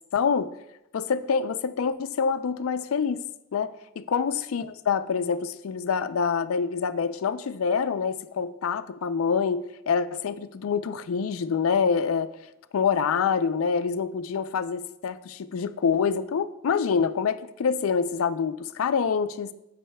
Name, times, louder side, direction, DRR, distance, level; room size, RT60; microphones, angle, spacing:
voice 1, 0.1-0.5 0.9-3.2 3.5-12.3 12.7-19.5, left 6 dB, 85° left, 12 dB, 0.4 m, -26 dB
10.0 x 7.5 x 2.2 m, 0.87 s
head